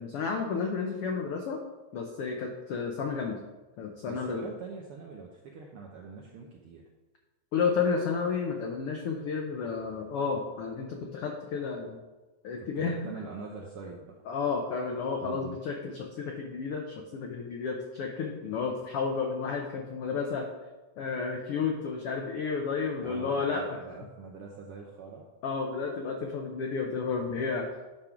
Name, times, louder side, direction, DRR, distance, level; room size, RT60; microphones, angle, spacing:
voice 1, 0.0-1.6 1.9-3.4 3.8-4.5 7.5-12.0 12.4-13.1 14.3-20.5 21.0-23.8 25.4-27.7, left 5 dB, 85° left, 2 dB, 1.2 m, -31 dB
voice 2, 4.0-6.8 12.7-14.1 15.2-15.6 23.0-25.2, right 4 dB, 75° right, -1 dB, 1.3 m, -44 dB
10.0 x 3.7 x 5.8 m, 1.2 s
omnidirectional pair, 3.5 m